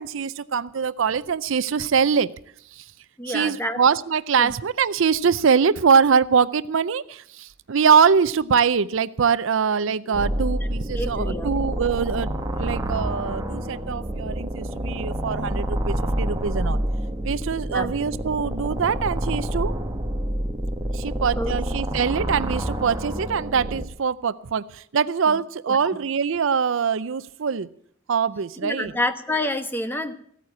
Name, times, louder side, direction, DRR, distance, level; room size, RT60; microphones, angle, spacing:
voice 1, 0.0-2.3 2.7-2.9 3.3-12.3 12.6-16.8 17.2-19.7 20.9-27.7 28.1-28.9, right 6 dB, 70° right, 0.5 m, -23 dB
voice 2, 3.2-3.8 4.4-4.5 10.0-10.2 10.9-11.5 17.7-17.9 21.4-21.6 25.3-25.4 25.7-25.8 28.6-30.1, left 1 dB, 10° left, 1.1 m, -28 dB
sound 1, 10.1-23.8, right 1 dB, 20° right, 1.3 m, -28 dB
15.5 x 9.2 x 8.5 m
head